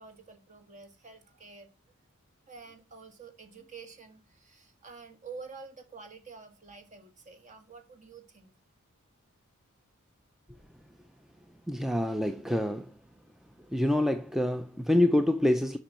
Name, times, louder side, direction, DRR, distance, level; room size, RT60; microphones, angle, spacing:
voice 1, 0.0-1.7 2.5-8.5, right 4 dB, 35° right, 1.6 m, -48 dB
voice 2, 11.7-13.0 13.7-15.8, left 1 dB, ahead, 0.4 m, -26 dB
7.2 x 5.3 x 6.2 m
head